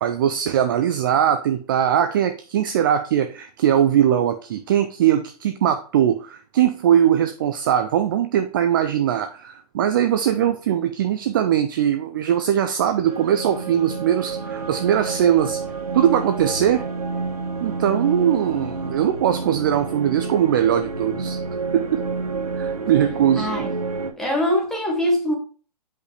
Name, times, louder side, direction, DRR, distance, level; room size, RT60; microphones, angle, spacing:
voice 1, 0.0-15.6 15.9-16.8 17.6-21.4 21.7-22.1 22.6-23.6, right 10 dB, 30° right, 8 dB, 0.4 m, -20 dB
sound 1, 13.0-24.1, right 4 dB, 60° right, 1.4 m, -29 dB
voice 2, 23.4-23.7 24.2-25.3, left 1 dB, ahead, -2 dB, 1.7 m, -22 dB
7.9 x 5.2 x 3.2 m, 0.38 s
figure-of-eight pair, 125°, 21 cm